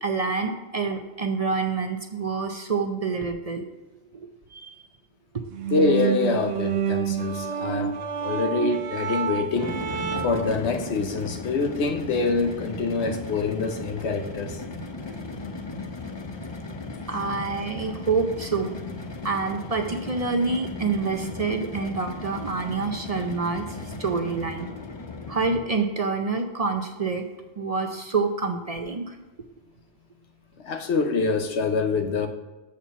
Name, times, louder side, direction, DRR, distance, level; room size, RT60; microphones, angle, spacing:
voice 1, 0.0-3.7 4.1-4.7 17.1-18.7 19.2-23.7 24.0-24.7 25.3-27.3 27.6-29.2, right 4 dB, 45° right, 0.6 m, -27 dB
sound 1, 5.5-10.6, right 8 dB, 70° right, 0.9 m, -28 dB
voice 2, 5.7-9.8 10.2-14.6 22.6-22.7 30.6-32.3, left 4 dB, 85° left, 1.1 m, -25 dB
sound 2, 9.4-25.9, left 3 dB, 30° left, 0.6 m, -36 dB
7.3 x 4.4 x 7.0 m
omnidirectional pair, 1.1 m